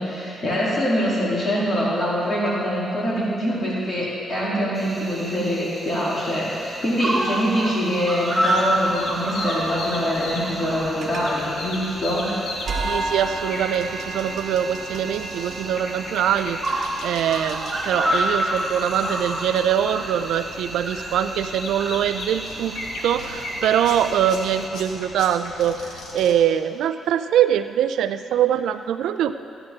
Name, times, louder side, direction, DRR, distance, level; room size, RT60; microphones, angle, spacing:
voice 1, 0.0-12.3, equal, 40° left, -7 dB, 3.2 m, -24 dB
Cricket, 4.7-24.7, right 1 dB, 25° right, 2.3 m, -30 dB
sound 1, 8.4-26.4, left 2 dB, 75° left, 1.7 m, -37 dB
sound 2, 9.1-24.7, right 3 dB, 60° right, 1.2 m, -37 dB
voice 2, 12.8-22.8 23.0-25.8 26.1-29.3, right 9 dB, 85° right, 11 dB, 0.4 m, -23 dB
15.0 x 10.0 x 3.7 m, 2.5 s
cardioid pair, 75°, 0 cm